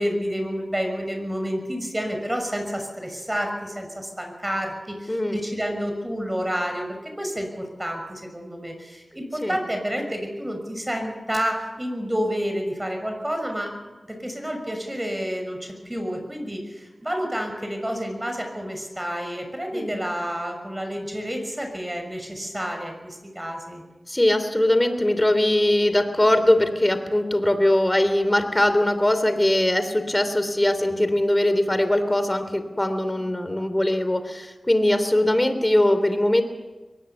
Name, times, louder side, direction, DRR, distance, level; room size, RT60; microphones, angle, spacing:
voice 1, 0.0-13.7 14.1-23.8, equal, 20° right, 4 dB, 6.3 m, -29 dB
voice 2, 5.1-5.4 9.4-9.6 19.7-19.9 24.1-36.4, left 1 dB, 20° left, 10 dB, 3.1 m, -21 dB
23.0 x 18.5 x 7.2 m, 1.2 s
cardioid pair, 45°, 0 cm